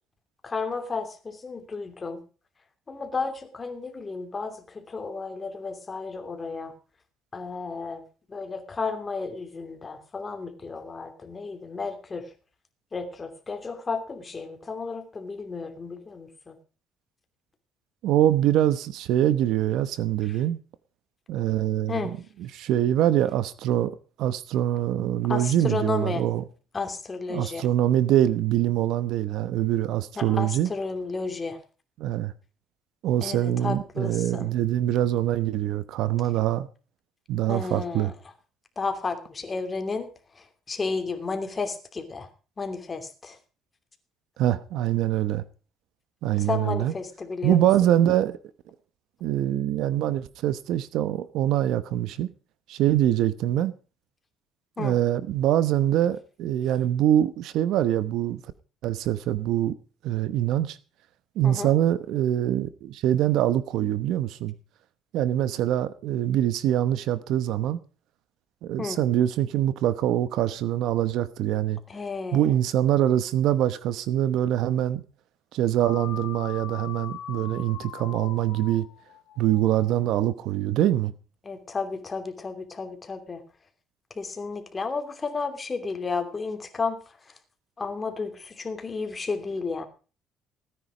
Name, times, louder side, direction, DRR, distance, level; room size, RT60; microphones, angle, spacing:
voice 1, 0.4-2.2 2.9-6.7 7.3-8.0 8.3-12.3 12.9-16.6 21.9-22.1 25.3-26.2 26.7-27.7 30.2-31.6 33.2-34.5 37.5-38.1 38.8-40.1 40.3-42.3 42.6-43.4 46.4-47.7 54.8-55.0 61.4-61.7 68.8-69.0 71.9-72.5 81.4-83.4 84.1-87.0 87.8-89.8, left 4 dB, 25° left, 2.8 m, -32 dB
voice 2, 18.0-20.6 21.3-22.1 22.4-23.9 24.2-26.4 27.3-30.7 32.0-32.3 33.0-36.7 37.3-38.1 44.4-45.4 46.2-46.9 47.4-48.4 49.2-52.3 52.7-53.7 54.8-58.4 58.8-59.7 60.0-60.8 61.4-64.5 65.1-67.8 68.6-71.8 72.3-75.0 75.5-78.9 79.4-81.1, right 12 dB, 75° right, 1.0 m, -24 dB
sound 1, 75.8-80.3, left 12 dB, 75° left, 4.1 m, -41 dB
17.0 x 9.8 x 5.1 m
cardioid pair, 120°, 0 cm